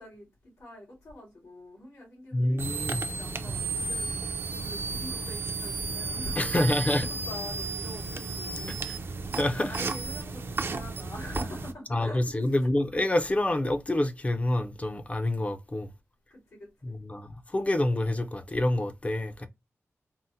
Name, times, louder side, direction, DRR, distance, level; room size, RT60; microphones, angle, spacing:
voice 1, 0.0-2.6 3.1-12.6 16.3-17.0, left 1 dB, 85° left, 2.0 m, -44 dB
voice 2, 2.3-3.1 6.4-7.1 8.7-9.0 9.3-9.7 11.9-15.9 16.8-19.5, left 1 dB, 25° left, 0.5 m, -27 dB
sound 1, 2.6-11.7, right 4 dB, 50° right, 0.4 m, -33 dB
3.7 x 2.0 x 2.6 m
wide cardioid pair, 90°, 5 cm